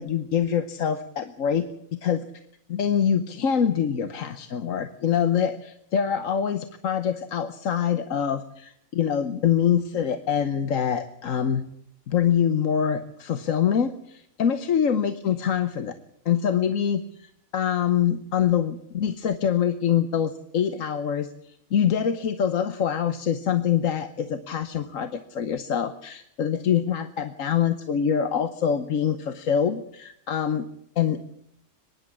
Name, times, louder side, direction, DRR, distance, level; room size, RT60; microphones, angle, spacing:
voice 1, 0.0-1.6 2.0-2.2 2.7-11.7 12.1-15.9 16.2-30.7 31.0-31.2, left 8 dB, 75° left, 10 dB, 1.4 m, -25 dB
24.0 x 11.0 x 9.8 m, 0.75 s
omnidirectional pair, 1.4 m